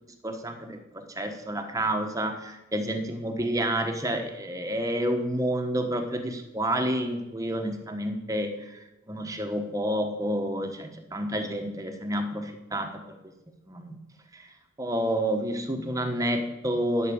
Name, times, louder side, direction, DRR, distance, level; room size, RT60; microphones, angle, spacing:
voice 1, 0.2-8.8 9.1-13.2 13.7-14.0 14.3-14.5 14.8-17.1, right 1 dB, 15° right, 5 dB, 1.1 m, -29 dB
10.5 x 5.9 x 8.6 m, 0.96 s
head